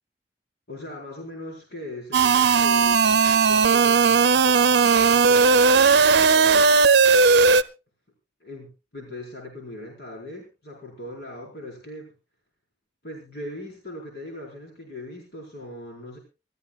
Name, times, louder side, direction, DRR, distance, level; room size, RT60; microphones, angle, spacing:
voice 1, 0.7-7.0 8.4-12.1 13.0-16.2, left 1 dB, 65° left, -1 dB, 4.4 m, -40 dB
sound 1, 2.1-7.6, right 5 dB, 75° right, 0.6 m, -17 dB
26.0 x 13.0 x 2.4 m, 0.30 s
head